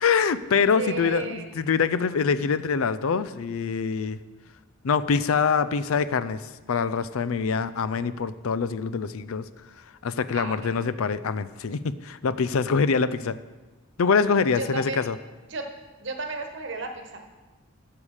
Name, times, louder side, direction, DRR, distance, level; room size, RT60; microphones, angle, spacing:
voice 1, 0.0-4.2 4.8-6.4 6.7-9.4 10.0-13.4 14.0-15.2, left 5 dB, 80° left, 15 dB, 0.5 m, -24 dB
voice 2, 0.7-1.5 10.3-10.7 14.6-15.0 15.5-15.7 16.0-17.2, right 3 dB, 60° right, 5 dB, 1.2 m, -33 dB
12.5 x 6.8 x 4.9 m, 1.2 s
head